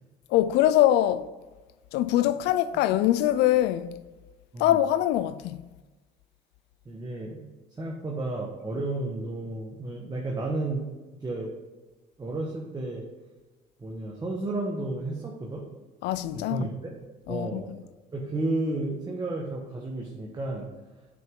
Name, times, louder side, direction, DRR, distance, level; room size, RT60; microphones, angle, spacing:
voice 1, 0.3-1.3 1.9-4.0 4.6-5.6 16.0-16.7 17.3-17.6, left 13 dB, 85° left, 0.4 m, -23 dB
voice 2, 6.8-7.4 7.8-10.9 11.2-11.5 12.2-13.0 13.8-15.6 16.3-16.7 17.3-17.7 18.1-20.7, right 2 dB, 25° right, 1.3 m, -32 dB
9.1 x 5.9 x 3.7 m
cardioid pair, 110°, 17 cm